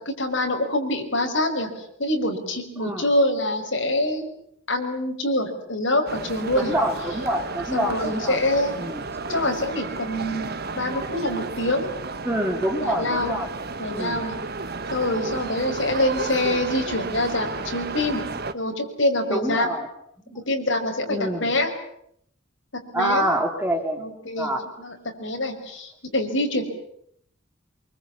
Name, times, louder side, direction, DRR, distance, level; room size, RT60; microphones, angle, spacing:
voice 1, 0.0-4.2 4.7-6.8 7.7-8.7 9.3-11.9 12.8-13.3 13.8-14.4 14.9-18.3 18.5-19.7 20.3-21.7 22.9-23.3 24.0-24.5 24.8-26.6, left 1 dB, 65° left, 4 dB, 5.4 m, -25 dB
voice 2, 2.8-3.1 6.5-8.4 8.7-9.0 12.2-13.5 13.9-14.2 19.3-19.9 21.1-21.5 22.9-24.0 24.4-24.6, equal, 10° right, 3 dB, 3.2 m, -26 dB
sound 1, 6.1-18.5, right 3 dB, 50° right, 1.4 m, -33 dB
26.0 x 24.0 x 8.6 m, 0.71 s
head